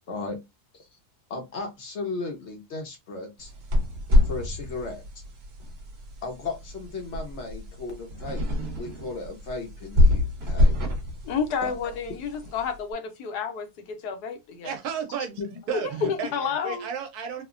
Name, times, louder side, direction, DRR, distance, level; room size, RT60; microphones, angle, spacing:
voice 1, 0.1-0.4 0.7-0.9 1.3-3.5 4.2-5.0 6.2-8.5 8.8-10.8 11.6-11.7 15.4-15.5 16.0-16.1, left 3 dB, 60° left, 0.8 m, -35 dB
sound 1, 3.4-12.8, left 1 dB, 50° right, 0.9 m, -26 dB
voice 2, 11.2-14.7 15.7-15.8 16.3-16.8, left 6 dB, 85° left, 1.2 m, -30 dB
voice 3, 14.6-15.4 15.7-16.3 16.6-17.4, right 7 dB, 75° right, 1.2 m, -32 dB
3.1 x 2.1 x 2.4 m
omnidirectional pair, 1.7 m